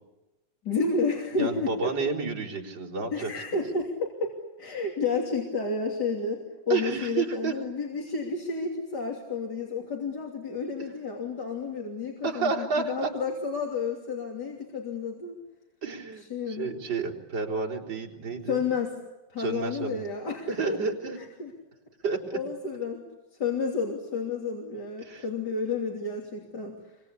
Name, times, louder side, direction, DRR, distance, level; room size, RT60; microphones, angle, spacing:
voice 1, 0.6-1.9 3.1-4.3 4.6-15.4 16.3-16.8 18.5-19.0 19.3-20.8 21.2-21.5 22.3-23.0 23.4-26.8, left 4 dB, 65° left, 0 dB, 3.7 m, -31 dB
voice 2, 1.4-3.3 6.7-7.5 12.2-13.1 15.8-18.6 19.4-20.0 20.5-21.2 22.0-22.4 25.0-25.2, right 4 dB, 85° right, -3 dB, 4.7 m, -30 dB
29.0 x 24.5 x 8.5 m, 1.0 s
omnidirectional pair, 2.0 m